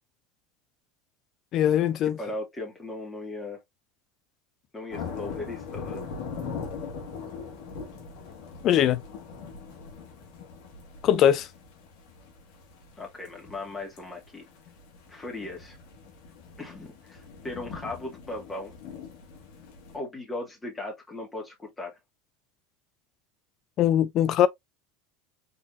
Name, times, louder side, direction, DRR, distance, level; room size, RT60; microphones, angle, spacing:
voice 1, 1.5-2.2 8.6-9.0 11.0-11.5 23.8-24.5, left 10 dB, 50° left, 0.5 m, -21 dB
voice 2, 2.2-3.6 4.7-6.0 13.0-14.5 15.1-15.8 16.6-18.7 19.9-22.0, left 2 dB, 15° left, 2.2 m, -37 dB
sound 1, 4.9-20.0, left 5 dB, 65° left, 1.6 m, -41 dB
3.9 x 3.9 x 2.5 m
hypercardioid pair, 90°, 0 cm